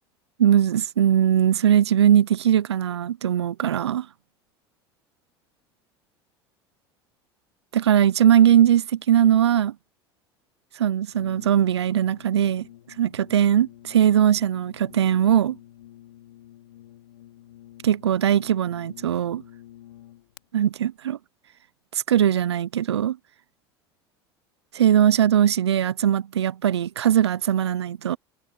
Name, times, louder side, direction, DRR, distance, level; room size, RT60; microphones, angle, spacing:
voice 1, 0.4-4.1 7.7-9.7 10.8-12.7 13.0-15.6 17.8-19.4 20.5-21.2 21.9-23.2 24.7-28.2, right 10 dB, 85° right, 0.6 m, -20 dB
Brass instrument, 11.1-20.4, left 13 dB, 80° left, 5.3 m, -48 dB
hypercardioid pair, 75°, 14 cm